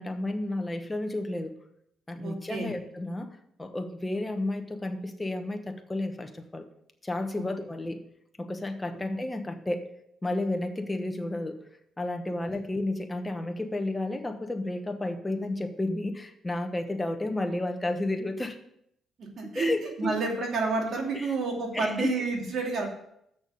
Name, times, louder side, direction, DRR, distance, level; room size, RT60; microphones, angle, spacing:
voice 1, 0.0-1.5 2.1-3.3 3.6-6.7 7.0-8.0 8.4-9.9 10.2-11.6 12.0-18.6 19.4-20.1 21.1-21.3 21.7-22.1, left 2 dB, 15° left, 6 dB, 1.2 m, -32 dB
voice 2, 2.2-2.7 12.3-12.4 19.2-22.8, right 3 dB, 60° right, 0 dB, 2.6 m, -30 dB
6.7 x 6.1 x 6.9 m, 0.75 s
cardioid pair, 90°, 0 cm